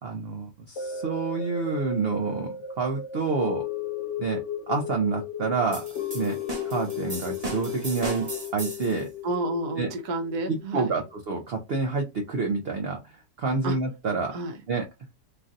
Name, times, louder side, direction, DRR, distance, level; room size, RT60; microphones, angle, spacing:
voice 1, 0.0-3.6 4.2-4.4 4.7-5.8 6.1-6.4 6.7-9.1 9.8-9.9 10.5-13.0 13.4-14.4 14.7-14.9, right 4 dB, 60° right, 0.6 m, -28 dB
sound 1, 0.8-11.1 11.6-11.7, left 7 dB, 60° left, 0.8 m, -35 dB
sound 2, 5.7-9.0, right 2 dB, 30° right, 1.0 m, -37 dB
voice 2, 9.2-10.9 13.6-13.8 14.3-14.6, right 2 dB, 80° right, 1.2 m, -30 dB
3.2 x 2.5 x 2.5 m
omnidirectional pair, 1.7 m